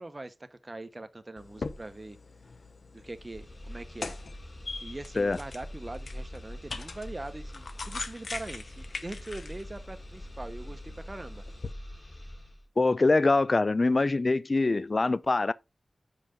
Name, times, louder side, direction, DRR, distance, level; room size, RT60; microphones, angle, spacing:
voice 1, 0.0-2.2 2.9-4.1 4.8-11.4, right 2 dB, 35° right, 1.0 m, -42 dB
sound 1, 1.4-11.7, left 3 dB, 70° left, 0.9 m, -42 dB
sound 2, 3.0-12.7, equal, 35° left, 1.8 m, -44 dB
voice 2, 12.8-15.5, left 3 dB, 50° left, 0.4 m, -24 dB
5.7 x 5.0 x 5.2 m
cardioid pair, 45°, 0 cm